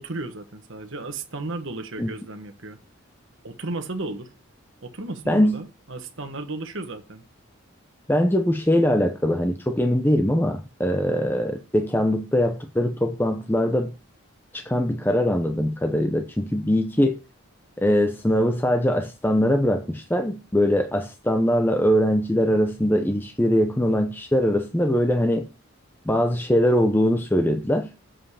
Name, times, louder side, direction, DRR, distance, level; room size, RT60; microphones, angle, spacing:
voice 1, 0.0-2.8 3.4-4.3 4.8-7.2, right 2 dB, 60° right, 1.3 m, -34 dB
voice 2, 5.3-5.6 8.1-13.9 14.5-17.2 17.8-25.5 26.1-27.9, equal, 10° left, 0.6 m, -22 dB
7.6 x 5.2 x 4.9 m
head